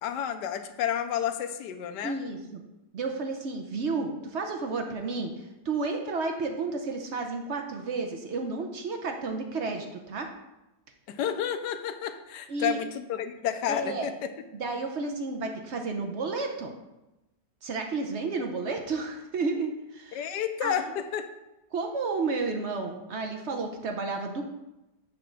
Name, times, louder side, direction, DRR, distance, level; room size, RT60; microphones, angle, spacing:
voice 1, 0.0-2.2 11.1-14.3 20.1-21.3, left 9 dB, 85° left, 9 dB, 1.2 m, -31 dB
voice 2, 2.0-2.6 2.9-5.3 5.6-10.3 12.5-12.8 13.7-14.1 14.5-16.7 17.6-20.3 20.6-20.8 21.7-24.4, right 3 dB, 60° right, 4 dB, 0.8 m, -31 dB
7.1 x 3.3 x 6.2 m, 0.97 s
omnidirectional pair, 1.8 m